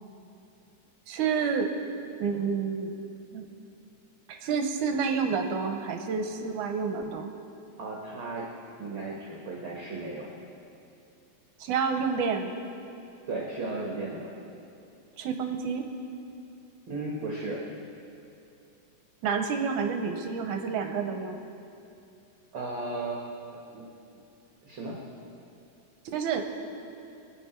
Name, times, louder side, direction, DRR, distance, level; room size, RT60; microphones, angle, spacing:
voice 1, 1.1-1.7 2.2-2.9 3.3-3.4 4.3-7.3 11.6-12.5 15.2-15.9 19.2-21.4 26.1-26.4, right 5 dB, 70° right, 5 dB, 2.1 m, -29 dB
voice 2, 7.8-8.5 8.8-10.3 13.3-14.3 16.9-17.6 22.5-23.2 23.7-23.9 24.6-25.0, right 2 dB, 50° right, -2 dB, 1.6 m, -35 dB
24.0 x 9.6 x 4.4 m, 2.7 s
omnidirectional pair, 4.0 m